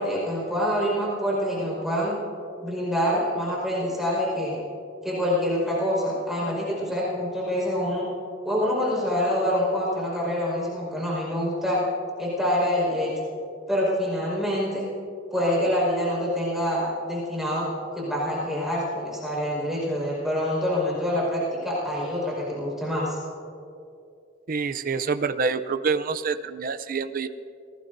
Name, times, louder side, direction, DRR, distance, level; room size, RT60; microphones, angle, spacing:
voice 1, 0.0-2.2 2.6-4.6 5.0-8.1 8.4-11.8 12.2-13.1 13.7-14.9 15.3-17.7 17.9-23.2, equal, ahead, -6 dB, 5.0 m, -26 dB
voice 2, 24.5-27.3, right 5 dB, 45° right, 10 dB, 0.6 m, -27 dB
28.0 x 19.0 x 2.7 m, 2.5 s
head